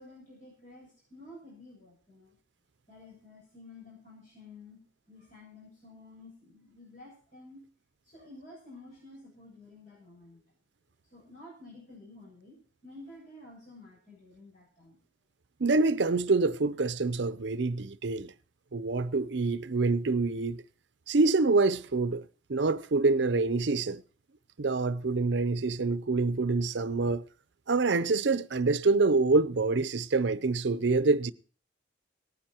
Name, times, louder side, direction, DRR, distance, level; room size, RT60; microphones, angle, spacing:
voice 1, 0.0-2.3 2.9-4.8 5.1-7.6 8.0-10.4 11.0-15.0, left 2 dB, 40° left, 7.3 m, -51 dB
voice 2, 15.6-18.3 18.7-20.6 21.1-24.0 24.6-27.3 27.7-31.3, right 3 dB, 70° right, 0.6 m, -26 dB
18.0 x 10.0 x 4.4 m
head